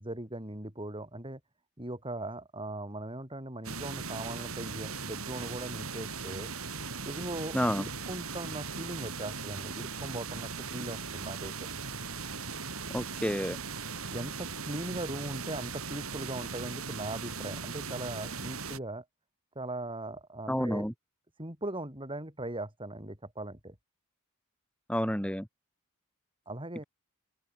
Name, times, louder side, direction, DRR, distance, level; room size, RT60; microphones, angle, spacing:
voice 1, 0.0-1.4 1.8-6.5 7.0-11.5 14.0-19.0 19.5-20.9 21.4-23.7 26.5-26.8, right 1 dB, 25° right, 6.5 m, -39 dB
sound 1, 3.6-18.8, right 5 dB, 80° right, 6.6 m, -39 dB
voice 2, 7.5-7.9 12.9-13.6 20.5-20.9 24.9-25.5, equal, 5° left, 6.1 m, -29 dB
open air
head